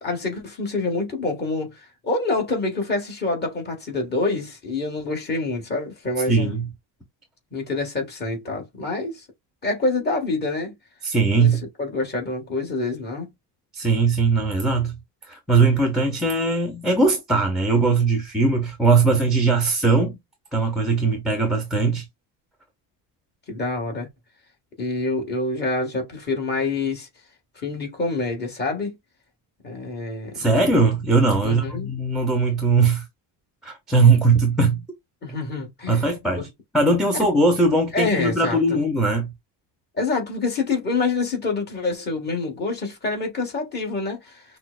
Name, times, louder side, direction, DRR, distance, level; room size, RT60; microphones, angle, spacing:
voice 1, 0.0-6.5 7.5-9.2 9.6-10.7 11.4-13.3 23.5-24.1 24.8-27.1 27.5-29.0 29.6-30.4 31.4-31.9 35.2-36.5 37.9-38.8 40.0-44.4, left 3 dB, 20° left, 1.7 m, -27 dB
voice 2, 6.3-6.7 11.0-11.6 13.7-14.9 15.3-20.2 20.5-22.0 30.3-33.0 33.6-34.8 35.9-36.5 36.7-39.3, right 3 dB, ahead, 0.6 m, -20 dB
5.9 x 2.1 x 2.3 m
cardioid pair, 165°, 45 cm